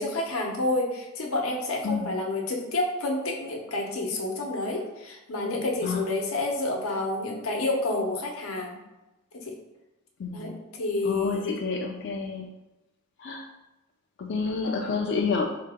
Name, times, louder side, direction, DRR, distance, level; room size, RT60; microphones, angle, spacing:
voice 1, 0.0-8.8 9.3-9.5 10.3-10.5 10.8-11.5 14.5-15.0, left 2 dB, 90° left, 0 dB, 0.8 m, -29 dB
voice 2, 1.8-2.1 5.8-6.0 10.2-10.6 11.0-12.5 13.2-13.4 14.2-15.5, left 4 dB, 55° left, 1 dB, 0.4 m, -29 dB
3.7 x 2.8 x 3.4 m, 0.98 s
head